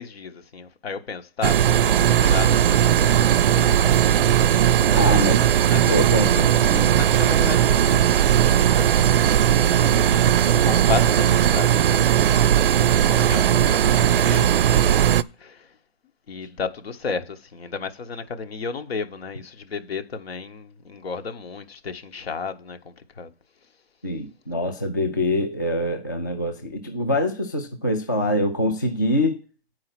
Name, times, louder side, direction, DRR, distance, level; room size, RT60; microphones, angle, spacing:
voice 1, 0.0-4.3 4.8-9.2 9.6-9.9 10.4-12.4 13.1-15.1 15.4-15.8 16.3-23.3, left 5 dB, 70° left, 1.4 m, -34 dB
sound 1, 1.4-15.2, right 10 dB, 60° right, 0.5 m, -18 dB
voice 2, 4.9-5.5 5.9-6.9 24.0-29.4, left 1 dB, 20° left, 0.3 m, -24 dB
8.4 x 4.8 x 5.9 m
hypercardioid pair, 165°, 32 cm